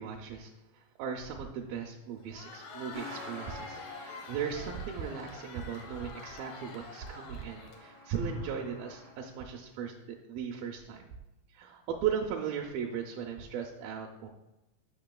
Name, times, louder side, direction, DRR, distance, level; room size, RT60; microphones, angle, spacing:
voice 1, 0.0-11.1 11.5-14.3, right 7 dB, 80° right, 1 dB, 2.2 m, -37 dB
Crowd, 2.2-8.2, left 4 dB, 75° left, 1.7 m, -47 dB
Truck, 2.9-9.1, left 1 dB, 50° right, 0.7 m, -50 dB
9.3 x 5.5 x 2.2 m, 0.98 s
omnidirectional pair, 4.3 m